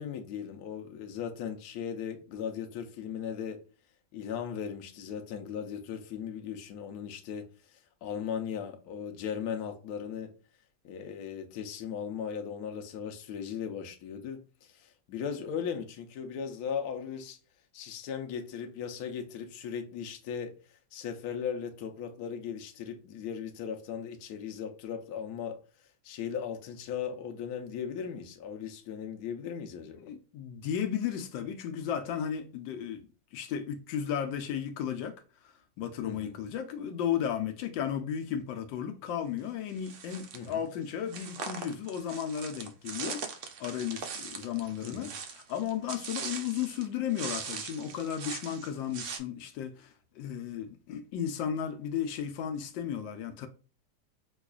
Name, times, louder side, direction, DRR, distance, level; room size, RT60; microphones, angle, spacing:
voice 1, 0.0-3.6 4.1-10.3 10.8-17.4 17.7-20.5 20.9-25.6 26.0-30.1 36.0-36.3 40.3-40.6 44.8-45.1, left 7 dB, 65° left, 1.1 m, -37 dB
voice 2, 30.0-53.5, left 9 dB, 80° left, 1.3 m, -34 dB
sound 1, 39.8-40.5 41.1-46.9 47.1-49.2, right 6 dB, 85° right, 0.6 m, -40 dB
4.9 x 2.4 x 2.3 m
omnidirectional pair, 2.0 m